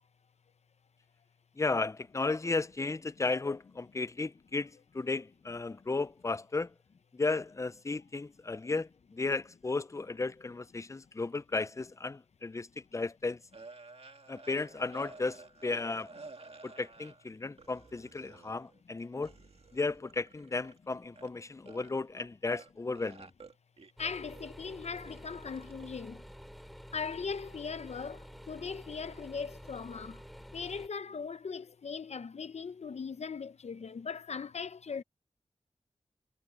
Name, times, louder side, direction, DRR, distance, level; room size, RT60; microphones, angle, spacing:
voice 1, 1.6-6.7 7.1-13.4 14.3-16.1 16.6-19.3 19.7-23.3, left 3 dB, 25° left, 0.5 m, -34 dB
sound 1, 13.5-17.3 17.6-18.8 19.2-20.8 21.0-21.3 21.6-22.7 22.9-25.9, right 3 dB, 60° right, 2.0 m, -52 dB
voice 2, 24.0-26.2 26.9-28.2 28.5-30.2 30.5-35.0, left 5 dB, 70° left, 0.7 m, -39 dB
sound 2, 24.0-30.9, equal, ahead, 5.7 m, -50 dB
wide cardioid pair, 85°, 12 cm